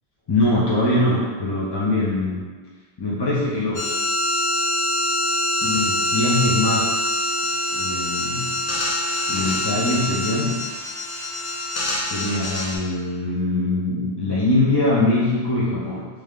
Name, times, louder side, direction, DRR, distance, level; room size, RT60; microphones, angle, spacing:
voice 1, 0.3-2.4 3.0-4.0 5.6-7.1 7.7-8.6 9.3-10.6 12.1-16.1, left 2 dB, 35° left, -7 dB, 0.4 m, -22 dB
sound 1, 3.7-12.8, left 1 dB, 75° left, 1.1 m, -24 dB
3.3 x 3.2 x 3.6 m, 1.5 s
omnidirectional pair, 1.1 m